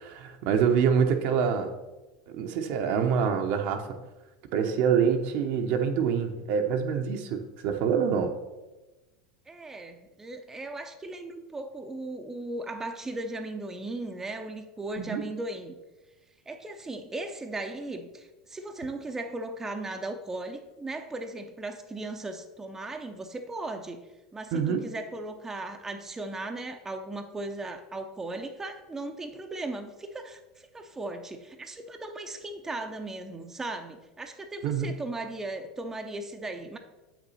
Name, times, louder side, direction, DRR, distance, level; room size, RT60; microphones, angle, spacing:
voice 1, 0.0-1.7 2.4-3.8 4.5-8.3 15.0-15.2 24.5-24.8 34.6-34.9, right 7 dB, 60° right, 5 dB, 0.9 m, -26 dB
voice 2, 9.5-15.8 16.5-24.0 24.3-36.8, right 2 dB, 15° right, 5 dB, 0.7 m, -37 dB
7.6 x 6.0 x 4.2 m, 1.1 s
hypercardioid pair, 95°, 3 cm